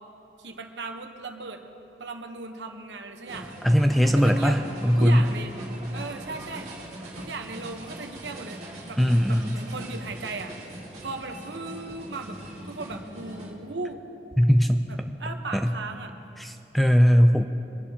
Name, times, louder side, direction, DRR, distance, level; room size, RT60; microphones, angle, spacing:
voice 1, 0.4-1.6 2.0-3.6 4.1-4.6 5.0-5.5 5.9-6.7 7.2-8.6 8.9-9.0 9.3-12.4 12.7-14.0 14.9-16.1, right 3 dB, 90° right, 5 dB, 1.0 m, -37 dB
sound 1, 3.2-13.5, right 1 dB, 40° right, 2.3 m, -41 dB
voice 2, 3.6-4.6 4.8-5.2 9.0-9.6 14.4-14.8 15.5-15.7 16.4-17.4, equal, ahead, 6 dB, 0.4 m, -19 dB
24.0 x 11.0 x 2.9 m, 3.0 s
head